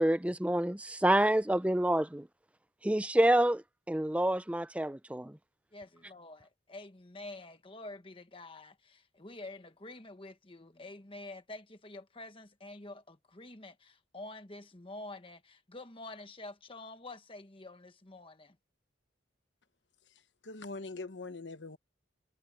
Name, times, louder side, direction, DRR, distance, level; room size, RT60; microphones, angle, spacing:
voice 1, 0.0-2.3 2.8-3.6 3.9-5.4, right 1 dB, 5° right, 0.5 m, -27 dB
voice 2, 5.7-6.4 6.7-8.7 9.2-13.7 14.1-15.4 15.7-18.3, left 2 dB, 30° left, 1.4 m, -47 dB
voice 3, 20.4-21.8, left 3 dB, 65° left, 1.1 m, -42 dB
head